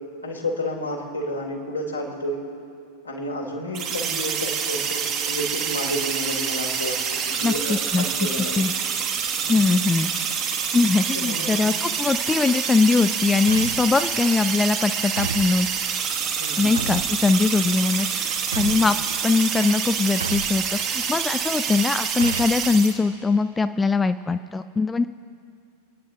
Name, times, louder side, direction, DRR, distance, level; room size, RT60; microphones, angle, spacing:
voice 1, 0.2-2.4 3.0-7.0 7.3-8.6 9.4-9.5 11.1-11.6 16.4-17.0 18.7-18.9, left 1 dB, 80° left, -1 dB, 3.4 m, -31 dB
sound 1, 3.7-22.9, right 7 dB, 35° right, 1.5 m, -27 dB
voice 2, 7.4-8.1 8.6-8.7 9.5-10.1 10.7-15.7 16.6-19.0 19.2-25.1, left 4 dB, 15° left, 11 dB, 0.4 m, -21 dB
sound 2, 13.5-14.0 15.2-15.5 16.8-17.1 18.5-18.9 20.2-20.6 22.2-22.6, right 5 dB, 70° right, 0.7 m, -30 dB
28.5 x 10.5 x 3.7 m, 2.4 s
figure-of-eight pair, 90°, 0 cm